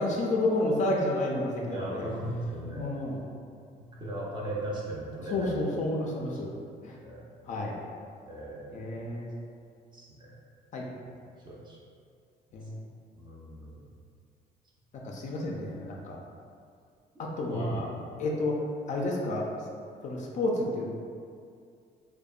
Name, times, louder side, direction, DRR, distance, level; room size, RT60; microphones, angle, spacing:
voice 1, 0.0-2.1 2.7-3.2 5.3-6.5 6.8-6.9 7.5-7.8 8.7-9.3 10.7-10.8 12.5-12.7 15.0-16.2 17.2-17.9 18.2-18.5 18.9-19.5 20.0-21.0, left 2 dB, 45° left, -1 dB, 0.4 m, -30 dB
voice 2, 1.7-2.9 4.0-5.8 6.1-6.2 6.5-6.7 7.0-7.2 8.3-9.0 9.9-10.4 11.0-11.1 11.4-11.8 13.2-13.8 17.5-17.8, right 1 dB, 25° right, -5 dB, 0.5 m, -37 dB
2.6 x 2.1 x 2.3 m, 2.3 s
cardioid pair, 110°, 17 cm